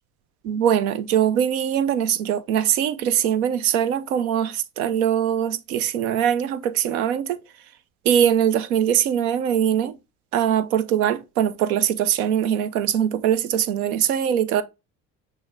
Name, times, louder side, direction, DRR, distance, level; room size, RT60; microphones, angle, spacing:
voice 1, 0.4-7.4 8.1-9.9 10.3-14.6, right 9 dB, 85° right, 0.6 m, -22 dB
6.2 x 2.6 x 3.1 m
hypercardioid pair, 65°, 43 cm